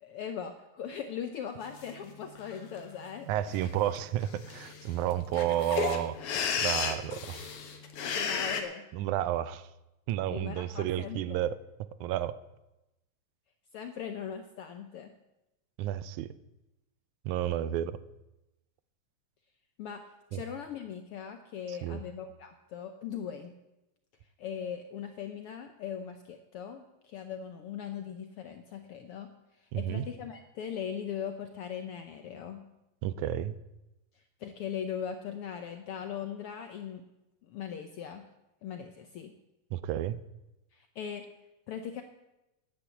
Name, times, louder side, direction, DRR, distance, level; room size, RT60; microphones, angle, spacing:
voice 1, 0.0-3.3 8.1-8.8 10.3-11.4 13.7-15.1 19.8-20.0 20.3-23.5 24.4-29.3 29.6-32.6 34.4-37.0 37.5-38.2 38.6-39.3 40.7-41.3 41.7-42.0, left 8 dB, 75° left, 7 dB, 1.3 m, -39 dB
sound 1, 1.8-1.9 2.4-2.8 3.5-3.7 4.0-4.1 4.2-8.6, left 6 dB, 60° left, 1.9 m, -33 dB
voice 2, 3.3-6.2 6.6-7.5 8.9-9.7 10.1-11.6 12.0-12.4 15.8-16.3 17.3-18.0 20.3-20.4 21.7-22.0 29.7-30.1 33.0-33.6 39.7-40.2, right 12 dB, 85° right, 15 dB, 2.1 m, -31 dB
10.5 x 8.6 x 8.3 m, 0.96 s
omnidirectional pair, 3.4 m